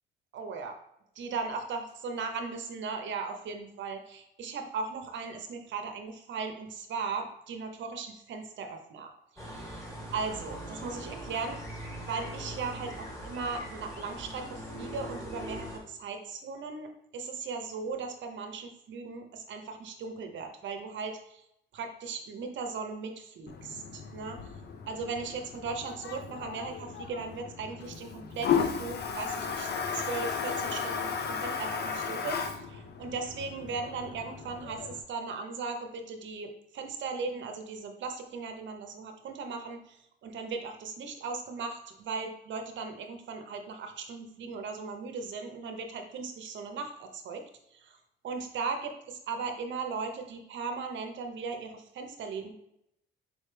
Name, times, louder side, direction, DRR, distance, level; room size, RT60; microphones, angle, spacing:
voice 1, 0.3-0.8 1.2-11.6 12.0-21.4 21.7-24.5 24.9-32.4 32.7-40.0 40.2-47.4 47.7-48.0 48.2-52.5, right 4 dB, 70° right, 5 dB, 0.8 m, -38 dB
sound 1, 9.4-15.8, equal, 15° left, 1.5 m, -41 dB
Toilet flush, 23.5-35.0, left 6 dB, 55° left, 0.6 m, -35 dB
4.9 x 3.2 x 3.3 m, 0.79 s
cardioid pair, 90°, 20 cm